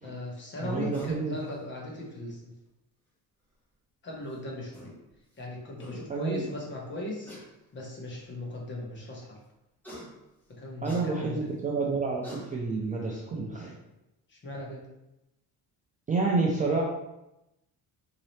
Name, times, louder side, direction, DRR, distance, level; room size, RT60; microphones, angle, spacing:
voice 1, 0.0-2.5 4.0-4.9 5.4-7.3 7.7-9.4 10.5-11.5 14.3-14.8, left 1 dB, 30° left, -3 dB, 1.0 m, -38 dB
voice 2, 0.6-1.4 6.1-6.5 10.8-13.7 16.1-16.8, right 3 dB, 20° right, -3 dB, 0.4 m, -29 dB
sound 1, 0.9-1.2 2.7-2.8 4.3-4.4 4.7-4.9 5.5-5.6 5.8-6.0 7.2-7.4 8.3-8.4 9.8-10.1 10.8-11.1 11.8-11.9 12.2-12.4, equal, 5° left, 1.2 m, -43 dB
3.9 x 2.8 x 3.1 m, 0.92 s
cardioid pair, 140°, 38 cm